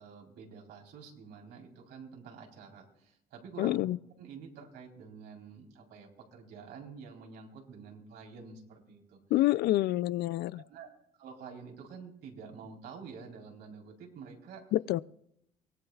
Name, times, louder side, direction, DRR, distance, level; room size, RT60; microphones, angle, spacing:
voice 1, 0.0-3.8 4.2-9.2 10.5-10.9 11.2-14.6, right 5 dB, 80° right, 3.9 m, -48 dB
voice 2, 3.6-4.0 9.3-10.6 14.7-15.0, left 16 dB, 70° left, 0.4 m, -27 dB
24.0 x 19.0 x 2.4 m
cardioid pair, 110°, 17 cm